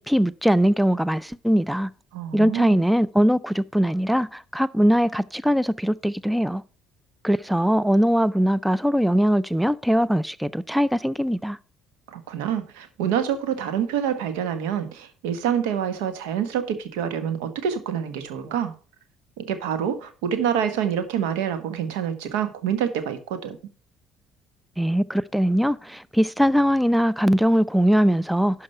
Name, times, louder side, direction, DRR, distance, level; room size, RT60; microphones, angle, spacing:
voice 1, 0.0-1.9 2.3-6.6 7.2-11.6 24.8-28.6, equal, 5° right, 0.4 m, -21 dB
voice 2, 2.1-2.8 12.1-18.7 19.4-23.6, right 8 dB, 75° right, 1.3 m, -27 dB
11.5 x 4.8 x 5.5 m
hypercardioid pair, 60°, 0 cm